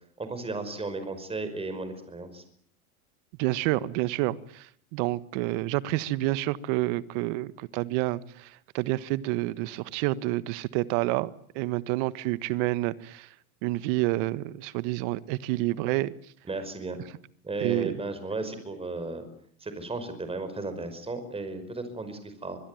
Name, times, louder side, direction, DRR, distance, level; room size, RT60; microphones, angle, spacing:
voice 1, 0.2-2.4 16.5-17.0 17.4-19.3 19.6-22.6, right 3 dB, 15° right, 9 dB, 5.4 m, -34 dB
voice 2, 3.4-11.3 11.5-13.3 13.6-16.1 17.6-17.9, right 18 dB, 55° right, 16 dB, 1.5 m, -28 dB
25.0 x 21.5 x 9.3 m, 0.64 s
hypercardioid pair, 110°, 44 cm